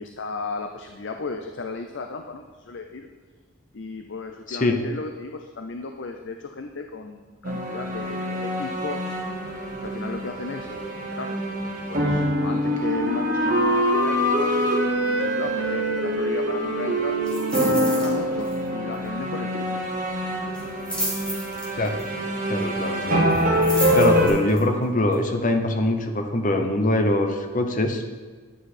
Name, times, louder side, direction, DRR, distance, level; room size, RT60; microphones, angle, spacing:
voice 1, 0.0-3.1 3.7-9.1 9.8-14.7 15.2-19.8, left 3 dB, 60° left, 5 dB, 0.5 m, -35 dB
voice 2, 4.5-4.8 21.8-22.0 22.5-23.3 23.9-28.0, left 1 dB, 40° left, 6 dB, 0.9 m, -23 dB
sound 1, 7.4-24.3, equal, 40° right, 1.4 m, -26 dB
Wind instrument woodwind instrument, 12.2-19.0, right 1 dB, 55° right, 1.1 m, -26 dB
sound 2, 17.2-18.1 18.4-18.7 18.9-19.0 20.5-22.0 23.3-24.6 25.1-25.2, equal, 5° left, 1.8 m, -31 dB
10.0 x 7.9 x 4.2 m, 1.4 s
head